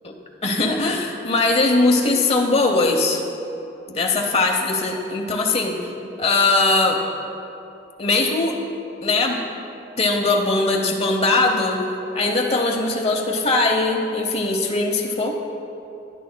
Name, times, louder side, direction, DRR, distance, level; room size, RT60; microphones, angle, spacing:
voice 1, 0.4-3.2 3.9-5.8 6.2-7.0 8.0-8.6 9.0-9.4 10.0-11.8 12.1-15.4, left 2 dB, 35° left, 2 dB, 0.9 m, -20 dB
22.5 x 11.5 x 2.2 m, 2.8 s
head